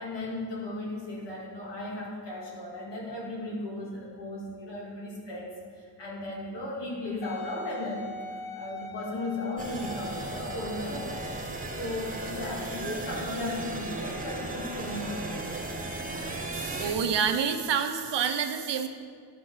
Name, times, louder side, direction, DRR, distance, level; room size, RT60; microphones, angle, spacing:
voice 1, 0.0-11.2 11.7-15.5, left 1 dB, 85° left, -4 dB, 2.4 m, -36 dB
Wind instrument woodwind instrument, 7.2-11.5 12.2-12.3, left 3 dB, 60° left, 0.6 m, -41 dB
sound 1, 9.6-16.9, right 2 dB, 20° right, 1.1 m, -36 dB
voice 2, 16.5-18.9, right 7 dB, 85° right, 7 dB, 0.8 m, -28 dB
11.0 x 6.0 x 4.8 m, 2.1 s
wide cardioid pair, 100°, 41 cm